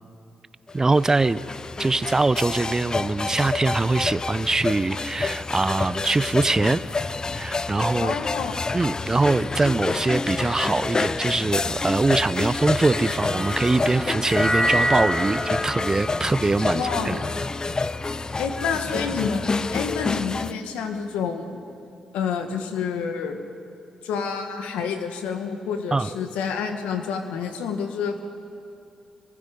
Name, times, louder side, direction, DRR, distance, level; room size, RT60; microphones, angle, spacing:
sound 1, 0.7-20.5, left 3 dB, 35° left, 0.7 m, -28 dB
voice 1, 0.7-1.4 1.8-8.1 8.7-17.2 25.9-26.1, right 3 dB, 25° right, 15 dB, 0.7 m, -23 dB
voice 2, 8.0-8.5 16.7-17.3 18.4-21.6 22.1-23.4 24.0-28.2, left 6 dB, 85° left, 5 dB, 1.9 m, -28 dB
sound 2, 12.5-18.9, equal, 10° left, 2.0 m, -29 dB
25.5 x 23.5 x 5.4 m, 2.5 s
supercardioid pair, 50°, 2 cm